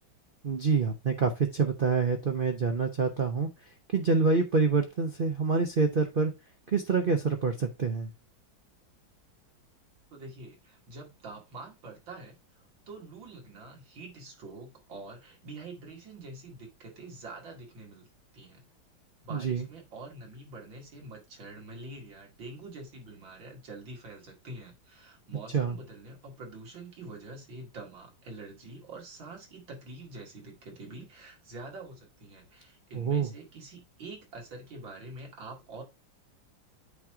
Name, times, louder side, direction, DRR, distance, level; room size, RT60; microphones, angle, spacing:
voice 1, 0.4-6.3 6.7-8.1 19.3-19.7 25.5-25.8 32.9-33.3, right 4 dB, 45° right, 0.7 m, -27 dB
voice 2, 10.1-18.1 18.3-18.6 19.2-35.8, right 2 dB, 85° right, 2.9 m, -46 dB
8.6 x 3.0 x 4.7 m
omnidirectional pair, 2.0 m